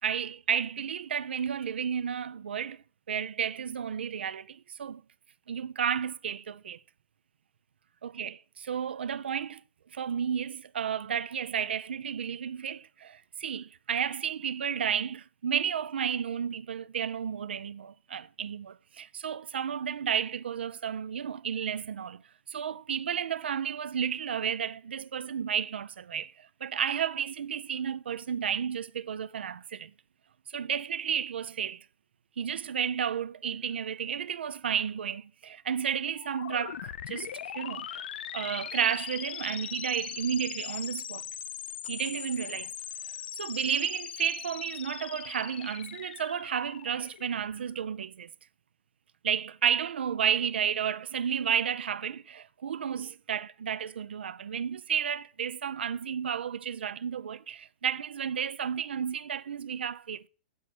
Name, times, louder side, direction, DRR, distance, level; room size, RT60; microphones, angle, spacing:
voice 1, 0.0-5.0 5.5-6.8 8.0-9.6 9.9-22.2 22.5-29.9 30.5-31.9 32.4-38.1 38.3-41.2 41.9-42.7 43.4-48.3 49.2-60.3, right 8 dB, 85° right, 0.4 m, -32 dB
sound 1, 36.1-47.8, left 10 dB, 75° left, 0.4 m, -40 dB
7.8 x 7.7 x 6.2 m
hypercardioid pair, 130°, 6 cm